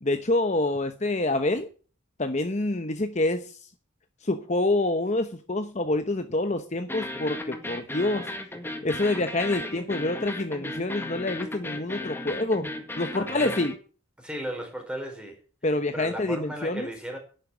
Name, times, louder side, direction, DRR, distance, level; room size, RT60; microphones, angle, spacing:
voice 1, 0.0-1.7 2.2-3.6 4.2-8.3 8.8-13.7 15.6-16.9, left 2 dB, 35° left, 1.0 m, -27 dB
sound 1, 6.9-13.8, left 2 dB, 10° left, 1.8 m, -35 dB
voice 2, 13.1-13.6 14.2-15.4 15.9-17.2, equal, 5° right, 4.4 m, -35 dB
11.0 x 9.1 x 8.2 m
head